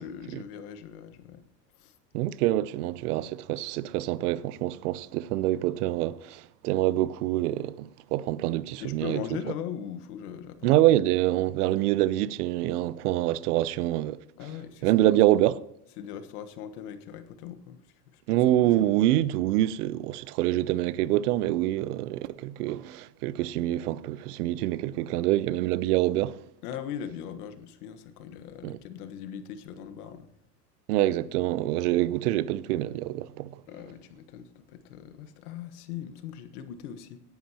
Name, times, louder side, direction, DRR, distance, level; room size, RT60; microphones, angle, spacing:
voice 1, 0.0-1.4 1.8-2.3 8.8-10.7 14.4-15.2 16.0-17.8 18.1-18.2 18.6-18.9 26.6-30.3 33.7-37.2, left 9 dB, 65° left, 1.4 m, -40 dB
voice 2, 2.1-9.2 10.6-14.2 14.8-15.6 18.3-26.4 28.6-28.8 30.9-33.6, right 14 dB, 70° right, 0.6 m, -26 dB
18.0 x 10.5 x 2.9 m
supercardioid pair, 155°, 48 cm